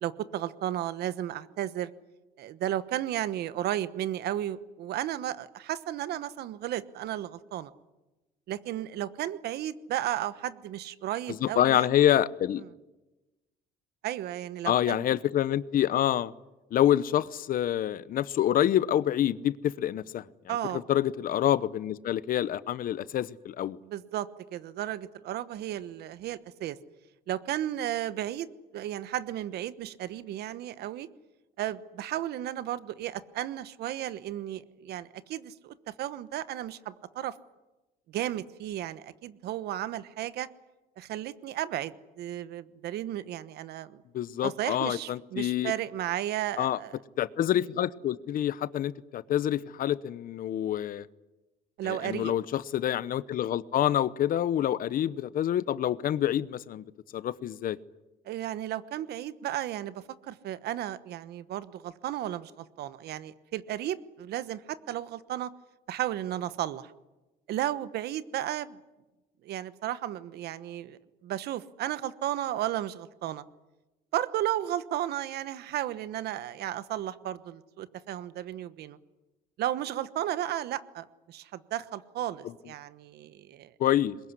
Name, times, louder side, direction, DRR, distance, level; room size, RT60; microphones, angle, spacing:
voice 1, 0.0-1.9 2.4-7.7 8.5-11.9 14.0-15.2 20.5-20.8 23.8-26.8 27.3-31.1 31.6-37.3 38.1-40.5 41.0-44.0 44.4-47.0 51.8-52.3 58.2-65.5 65.9-66.9 67.5-68.8 69.4-73.4 74.1-79.0 79.6-83.7, right 12 dB, 70° right, 1.2 m, -34 dB
voice 2, 11.4-12.6 14.6-16.3 16.7-20.6 20.9-23.8 44.1-45.7 46.6-46.8 47.2-51.0 51.8-56.8 57.1-57.8 83.8-84.2, left 11 dB, 55° left, 0.9 m, -27 dB
22.0 x 21.0 x 9.8 m
cardioid pair, 110°, 17 cm